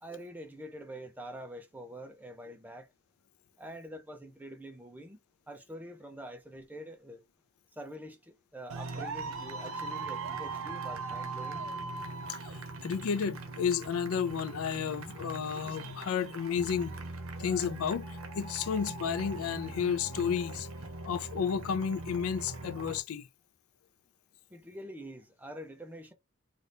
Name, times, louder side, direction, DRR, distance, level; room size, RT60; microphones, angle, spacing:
voice 1, 0.0-2.9 3.6-5.2 5.5-7.2 7.7-11.7 24.5-26.1, equal, 10° right, 0.6 m, -45 dB
sound 1, 8.7-23.0, right 3 dB, 85° right, 0.7 m, -40 dB
voice 2, 12.8-16.9 17.4-18.1 18.3-20.7 21.0-23.2, left 7 dB, 85° left, 0.4 m, -32 dB
2.7 x 2.5 x 3.3 m
head